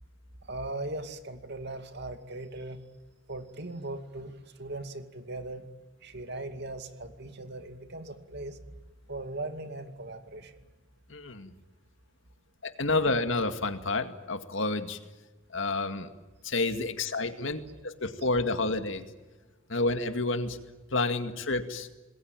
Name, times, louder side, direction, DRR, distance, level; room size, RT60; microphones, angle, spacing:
voice 1, 0.4-2.8 3.3-5.6 6.0-8.6 9.1-10.5, right 2 dB, 55° right, 8 dB, 2.4 m, -39 dB
voice 2, 11.1-11.5 12.6-15.0 15.5-16.1 16.4-19.1 19.7-20.6 20.9-21.9, left 3 dB, 65° left, 8 dB, 2.1 m, -29 dB
27.5 x 21.0 x 9.1 m, 1.2 s
head